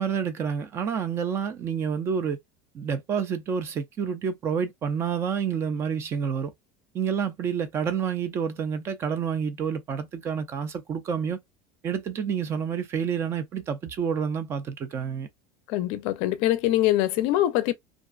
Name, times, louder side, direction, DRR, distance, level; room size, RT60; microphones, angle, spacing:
voice 1, 0.0-2.4 2.7-6.5 6.9-11.4 11.8-15.3, right 7 dB, 25° right, 0.4 m, -28 dB
voice 2, 15.7-17.7, left 14 dB, 50° left, 0.5 m, -23 dB
2.5 x 2.3 x 2.3 m
cardioid pair, 165°, 11 cm